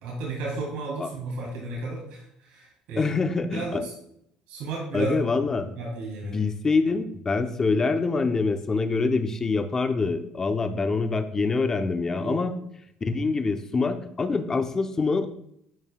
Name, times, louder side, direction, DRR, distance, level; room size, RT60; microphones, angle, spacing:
voice 1, 0.0-3.1 3.5-3.9 4.5-5.2 5.8-6.4 12.2-12.4, right 3 dB, 85° right, -3 dB, 2.8 m, -33 dB
voice 2, 3.0-3.8 4.9-5.7 6.2-12.6 13.0-15.3, left 4 dB, 25° left, 8 dB, 0.7 m, -25 dB
11.0 x 5.4 x 2.3 m, 0.74 s
cardioid pair, 125°, 2 cm